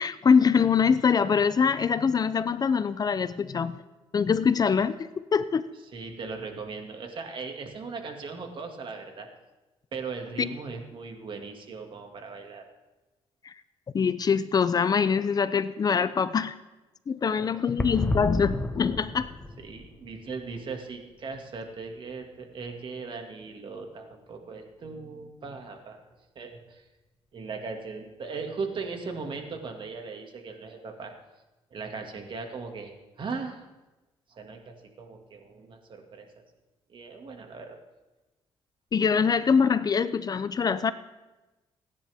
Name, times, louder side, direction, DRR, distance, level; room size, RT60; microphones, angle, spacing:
voice 1, 0.0-3.8 4.1-5.6 10.4-10.5 13.4-13.5 13.9-16.6 17.1-19.3 38.9-40.9, left 6 dB, 40° left, 14 dB, 0.6 m, -24 dB
voice 2, 5.9-9.3 9.9-12.6 17.4-17.5 19.6-26.0 26.4-26.9 27.3-31.1 31.7-33.7 34.3-36.4 36.9-37.8, right 4 dB, 50° right, 4 dB, 2.1 m, -38 dB
sound 1, 17.8-21.5 21.8-21.9 22.1-22.2, left 2 dB, 15° left, 1.2 m, -32 dB
26.5 x 10.0 x 3.6 m, 1.1 s
cardioid pair, 100°, 10 cm